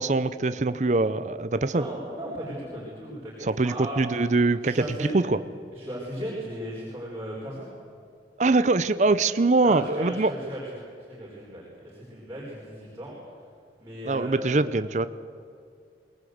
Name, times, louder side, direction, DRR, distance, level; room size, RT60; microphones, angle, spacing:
voice 1, 0.0-1.9 3.4-5.4 8.4-10.3 14.1-15.1, right 3 dB, 40° right, 13 dB, 0.6 m, -23 dB
voice 2, 1.7-4.0 4.6-5.1 5.7-7.7 9.6-13.1 13.8-14.5, right 1 dB, 15° right, -6 dB, 4.4 m, -36 dB
22.5 x 19.0 x 8.0 m, 2.4 s
head